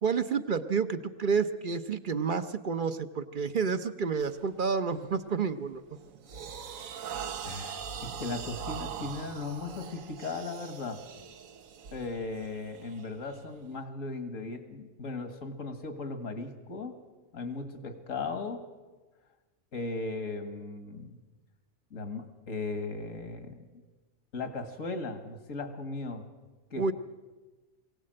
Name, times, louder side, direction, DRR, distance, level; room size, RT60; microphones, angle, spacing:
voice 1, 0.0-5.8 26.8-26.9, right 5 dB, 45° right, 10 dB, 0.8 m, -29 dB
sound 1, 4.2-4.4 4.9-5.2 5.7-13.8, right 7 dB, 90° right, 1.3 m, -42 dB
voice 2, 7.4-11.0 11.9-17.0 17.3-18.6 19.7-21.2 21.9-23.6 24.3-26.3 26.7-26.9, left 3 dB, 75° left, 8 dB, 2.1 m, -37 dB
23.0 x 17.0 x 7.7 m, 1.2 s
omnidirectional pair, 1.4 m